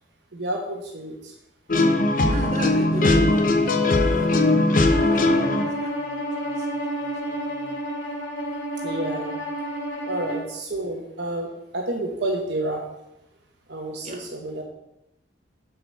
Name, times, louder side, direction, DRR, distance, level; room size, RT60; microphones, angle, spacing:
voice 1, 0.3-1.3 8.8-9.4 10.1-12.8 13.7-14.6, right 1 dB, 65° right, 0 dB, 1.2 m, -30 dB
sound 1, 1.7-5.6, left 2 dB, 50° left, 0.8 m, -19 dB
voice 2, 2.2-7.8 14.0-14.2, equal, 40° right, -1 dB, 1.7 m, -36 dB
Bowed string instrument, 4.9-10.5, right 1 dB, 75° left, 2.3 m, -30 dB
7.7 x 4.9 x 6.6 m, 0.85 s
head